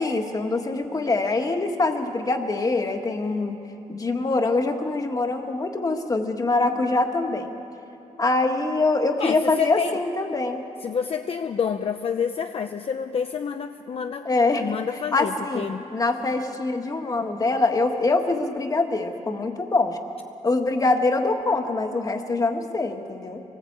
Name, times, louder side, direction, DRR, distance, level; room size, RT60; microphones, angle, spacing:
voice 1, 0.0-3.6 3.9-7.5 8.2-10.6 14.2-14.7 15.1-20.0 20.4-23.4, left 3 dB, 30° left, 5 dB, 1.6 m, -24 dB
voice 2, 9.2-10.0 10.8-14.3 14.6-15.8, left 7 dB, 50° left, 7 dB, 0.7 m, -28 dB
24.5 x 19.5 x 8.7 m, 2.9 s
wide cardioid pair, 170°, 13 cm